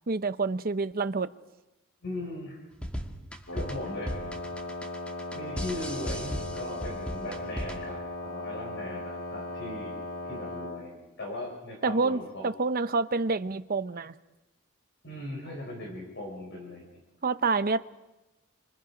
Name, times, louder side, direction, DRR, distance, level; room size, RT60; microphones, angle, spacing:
voice 1, 0.1-1.3 11.8-14.1 17.2-17.8, right 3 dB, 45° right, 0.7 m, -28 dB
voice 2, 2.0-2.7 3.5-4.2 4.5-4.7 5.3-9.9 10.3-12.5 15.0-17.0, left 1 dB, 55° left, 5.6 m, -39 dB
sound 1, 2.7-8.0, equal, 5° left, 1.5 m, -37 dB
Wind instrument woodwind instrument, 3.5-10.9, left 1 dB, 75° left, 3.0 m, -38 dB
28.0 x 26.0 x 5.1 m
head